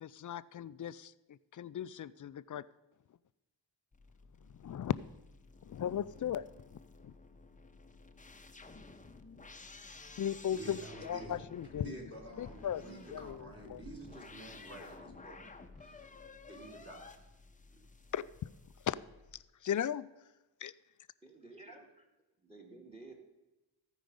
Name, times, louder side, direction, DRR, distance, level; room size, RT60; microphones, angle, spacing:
voice 1, 0.0-2.6 4.5-5.0 5.6-6.7 7.0-7.2 10.2-12.0 12.4-12.8 13.1-13.8 18.1-18.5 18.8-19.0 19.6-20.1 20.6-20.7, left 9 dB, 45° left, 16 dB, 0.4 m, -37 dB
sound 1, 3.9-19.4, left 3 dB, 15° left, 0.8 m, -54 dB
voice 2, 10.5-11.4 11.7-15.4 15.8-16.0 16.5-17.2 17.7-17.8, right 2 dB, 30° right, 0 dB, 3.3 m, -49 dB
voice 3, 21.2-22.0 22.4-23.1, right 3 dB, 15° right, 2 dB, 2.0 m, -53 dB
14.5 x 5.0 x 5.3 m, 1.0 s
cardioid pair, 65°, 44 cm